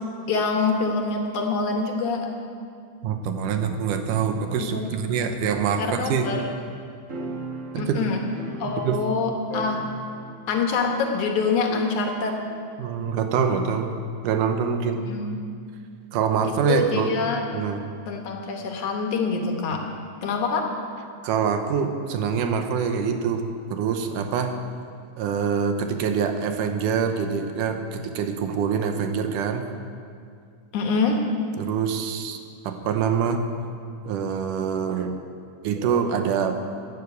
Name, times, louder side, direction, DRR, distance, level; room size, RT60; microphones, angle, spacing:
voice 1, 0.3-2.2 4.6-4.9 5.8-6.4 7.8-8.2 8.6-9.8 10.5-12.4 15.0-15.4 16.4-17.4 18.1-19.8 20.2-20.7 30.7-31.2, left 4 dB, 70° left, 2 dB, 2.6 m, -25 dB
voice 2, 3.0-6.3 7.7-8.0 8.8-9.0 12.8-13.9 14.2-15.0 16.1-17.2 17.5-17.8 19.7-19.8 21.2-24.6 25.2-29.7 31.6-33.4 34.1-35.1 35.6-36.6, right 6 dB, 80° right, 6 dB, 2.4 m, -25 dB
sound 1, 7.1-9.2 9.5-10.5 10.8-10.9 11.7-12.5, right 2 dB, 60° right, 0.7 m, -37 dB
12.0 x 9.9 x 8.2 m, 2.3 s
omnidirectional pair, 3.7 m